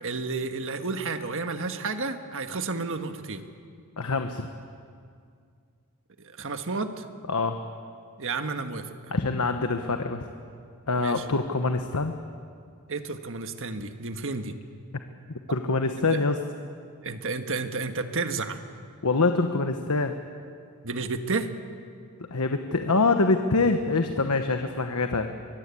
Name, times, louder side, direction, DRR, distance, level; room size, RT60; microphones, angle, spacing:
voice 1, 0.0-3.4 6.2-7.1 8.2-9.1 11.0-11.2 12.9-14.5 16.1-16.2 17.0-18.6 20.8-21.5, right 3 dB, 60° right, 7 dB, 1.5 m, -31 dB
voice 2, 4.0-4.5 7.3-7.6 9.1-10.2 10.9-12.2 15.5-16.4 19.0-20.1 22.3-25.3, left 3 dB, 80° left, 6 dB, 1.2 m, -25 dB
24.0 x 21.5 x 8.5 m, 2.3 s
head